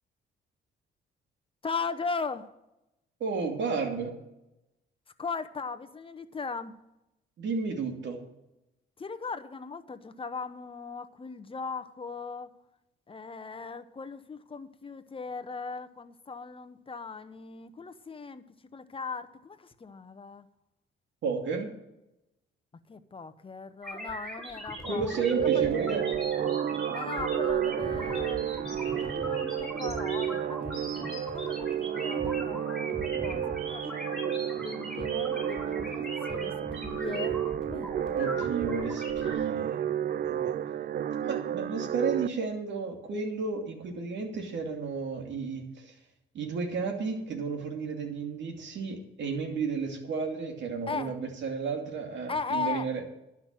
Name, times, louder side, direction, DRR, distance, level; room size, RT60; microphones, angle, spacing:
voice 1, 1.6-2.5 5.2-6.8 9.0-12.5 13.1-18.5 18.7-20.5 22.9-25.3 25.5-25.7 26.9-37.4 37.7-38.5 50.9-51.2 52.3-52.9, left 4 dB, 25° left, 10 dB, 0.9 m, -38 dB
voice 2, 3.2-4.1 7.4-8.2 21.2-21.7 24.8-26.1 38.1-39.9 40.2-40.5 41.2-45.9 46.3-53.0, right 5 dB, 65° right, 3 dB, 2.7 m, -32 dB
sound 1, 23.8-39.4, equal, ahead, 5.0 m, -40 dB
sound 2, 25.1-42.3, right 10 dB, 50° right, 0.4 m, -31 dB
11.5 x 6.0 x 8.9 m, 0.91 s
cardioid pair, 90°, 20 cm